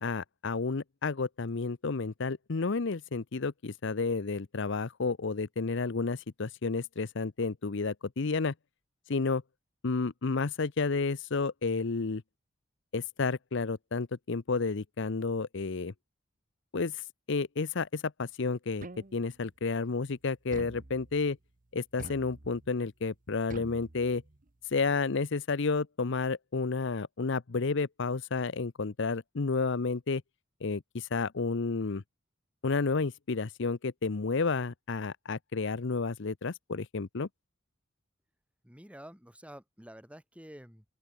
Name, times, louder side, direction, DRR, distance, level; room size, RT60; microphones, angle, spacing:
voice 1, 0.0-8.5 9.1-9.4 9.8-12.2 12.9-15.9 16.7-18.9 19.1-21.4 21.7-24.2 24.7-30.2 30.6-32.0 32.6-37.3, left 4 dB, 65° left, 0.7 m, -31 dB
sound 1, 18.8-19.5 20.5-21.4 22.0-22.8 23.5-24.5, right 2 dB, 45° right, 1.1 m, -47 dB
voice 2, 38.6-40.8, equal, 5° right, 6.0 m, -50 dB
open air
head